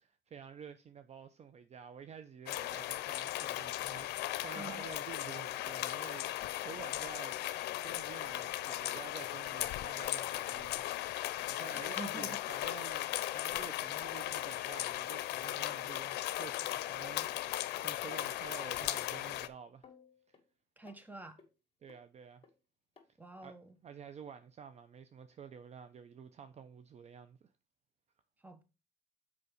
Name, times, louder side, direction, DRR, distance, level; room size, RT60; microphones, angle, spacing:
voice 1, 0.0-7.4 7.8-19.9 21.8-22.4 23.4-23.6 23.8-27.5, right 7 dB, 40° right, 0.6 m, -50 dB
sound 1, 2.5-19.5, left 15 dB, 80° left, 0.6 m, -37 dB
voice 2, 4.5-4.8 11.7-12.4 20.8-21.4 23.2-23.8 28.4-28.6, right 3 dB, 10° right, 1.2 m, -48 dB
sound 2, 17.3-17.4 17.7-18.0 18.3-18.4 18.8-18.9 19.3-19.5 19.8-20.5 20.9-21.0 21.4-21.5 21.9-22.0 22.4-22.5 23.0-23.1 23.7-23.8, left 6 dB, 30° left, 2.3 m, -59 dB
6.9 x 5.1 x 5.0 m
cardioid pair, 110°, 17 cm